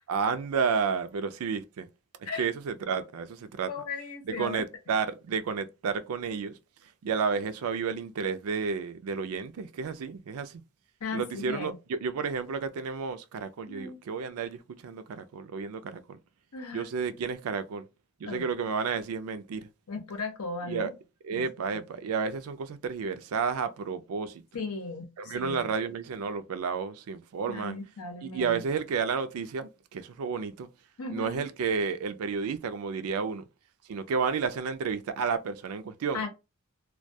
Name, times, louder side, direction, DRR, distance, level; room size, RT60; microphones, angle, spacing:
voice 1, 0.1-1.9 2.2-3.7 4.2-6.6 7.0-10.6 11.1-16.2 16.7-17.9 18.2-19.7 20.6-20.9 21.2-24.4 25.2-27.8 28.2-30.7 31.1-33.4 33.9-36.2, right 5 dB, 70° right, 0.4 m, -31 dB
voice 2, 3.7-4.6 11.0-11.8 13.7-14.0 16.5-16.9 18.3-18.5 19.9-20.9 21.3-21.5 24.5-25.7 27.5-28.6 31.0-31.5 36.1-36.3, left 4 dB, 85° left, 0.7 m, -36 dB
2.2 x 2.2 x 2.6 m
head